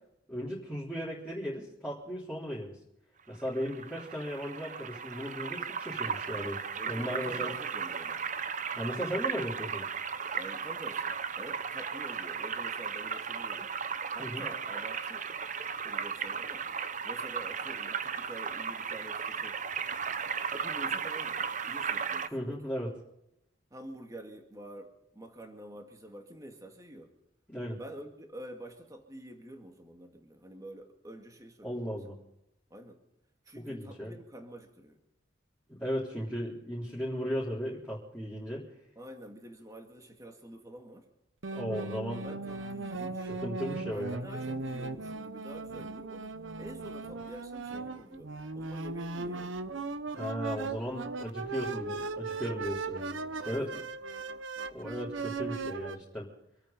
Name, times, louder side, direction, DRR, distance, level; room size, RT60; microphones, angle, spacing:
voice 1, 0.3-2.8 3.3-7.5 8.7-9.8 14.2-14.4 22.3-22.9 27.5-27.8 31.6-32.2 33.6-34.1 35.7-38.6 41.5-42.3 43.4-44.2 50.1-53.2 53.4-53.7 54.7-56.3, equal, 5° left, -8 dB, 3.8 m, -36 dB
sound 1, 3.4-22.3, right 6 dB, 40° right, 0.7 m, -36 dB
voice 2, 6.7-8.2 10.4-13.7 14.1-15.2 15.8-16.7 17.0-19.6 20.5-22.6 23.7-27.1 27.8-32.0 32.7-33.0 33.4-35.0 39.0-41.1 42.2-43.4 43.9-50.0 53.5-53.9, right 1 dB, 15° right, 3 dB, 2.2 m, -47 dB
sound 2, 41.4-56.0, right 3 dB, 75° right, 0.9 m, -38 dB
27.0 x 9.1 x 5.3 m, 0.84 s
head